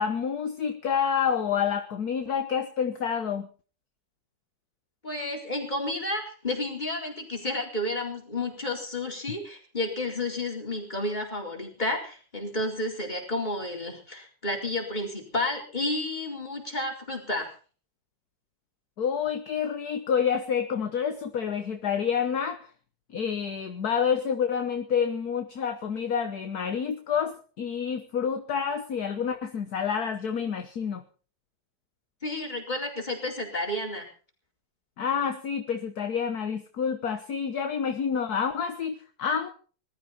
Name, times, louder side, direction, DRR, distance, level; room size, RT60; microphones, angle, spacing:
voice 1, 0.0-3.5 19.0-22.7 23.1-31.0 35.0-39.5, left 7 dB, 60° left, 7 dB, 1.6 m, -28 dB
voice 2, 5.0-17.5 32.2-34.1, left 2 dB, 25° left, 1 dB, 4.4 m, -31 dB
20.5 x 13.5 x 4.3 m, 0.39 s
omnidirectional pair, 2.0 m